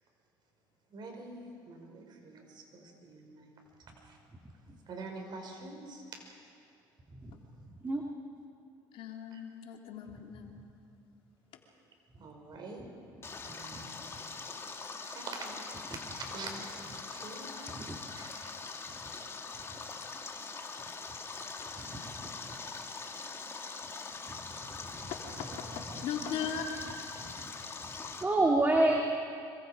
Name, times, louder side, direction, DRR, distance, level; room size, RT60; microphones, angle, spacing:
voice 1, 0.9-3.5 4.0-4.1 4.9-6.0 9.3-9.4 12.2-12.9 13.4-14.1 14.9-16.7 17.1-17.8 18.2-18.6, right 3 dB, 50° right, 2 dB, 5.7 m, -45 dB
voice 2, 8.9-10.6 25.1-25.5 26.0-26.8, left 7 dB, 65° left, 2 dB, 2.9 m, -38 dB
Stream, 13.2-28.2, left 4 dB, 25° left, 2.1 m, -43 dB
voice 3, 21.8-22.3 24.3-24.5 24.8-25.1 25.9-26.0 27.2-27.5 27.8-27.9 28.2-29.0, right 2 dB, 20° right, 0 dB, 2.3 m, -30 dB
26.0 x 24.5 x 5.2 m, 2.4 s
supercardioid pair, 95°, 10 cm